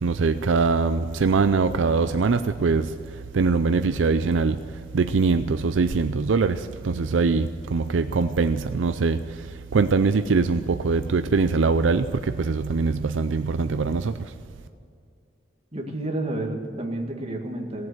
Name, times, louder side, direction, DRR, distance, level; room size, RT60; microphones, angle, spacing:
voice 1, 0.0-14.3, right 4 dB, 80° right, 10 dB, 0.5 m, -23 dB
voice 2, 15.7-17.9, right 1 dB, 35° right, 1 dB, 1.8 m, -30 dB
18.0 x 7.7 x 8.0 m, 2.4 s
head